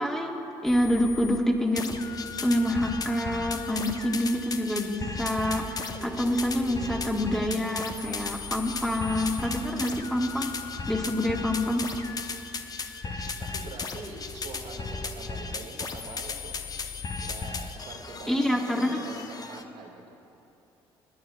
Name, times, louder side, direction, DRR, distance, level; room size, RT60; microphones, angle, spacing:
voice 1, 0.0-2.0 2.4-10.5 10.9-11.8 18.3-19.0, left 1 dB, 5° left, 0 dB, 1.6 m, -27 dB
sound 1, 0.7-1.4 1.7-19.6, left 4 dB, 35° left, 0.8 m, -36 dB
voice 2, 13.0-16.6 17.2-20.2, right 3 dB, 70° right, 0 dB, 1.9 m, -44 dB
25.0 x 9.7 x 2.3 m, 2.9 s
supercardioid pair, 65°, 11 cm